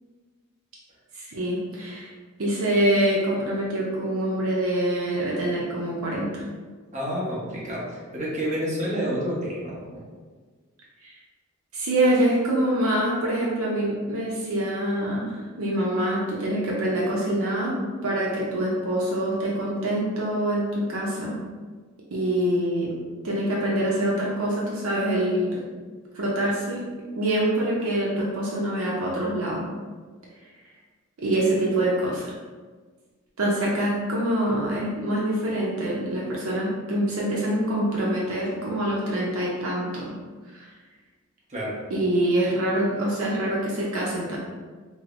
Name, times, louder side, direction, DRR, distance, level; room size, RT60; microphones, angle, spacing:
voice 1, 1.1-2.1 2.4-6.4 11.0-11.1 11.7-21.4 22.1-22.9 23.2-25.6 26.1-26.9 27.2-29.7 31.2-32.3 33.4-40.0 40.5-40.7 41.9-44.4, right 1 dB, 75° right, -5 dB, 0.6 m, -25 dB
voice 2, 6.9-10.0 41.5-41.8, equal, 35° right, -6 dB, 1.0 m, -29 dB
4.9 x 2.0 x 2.5 m, 1.4 s
head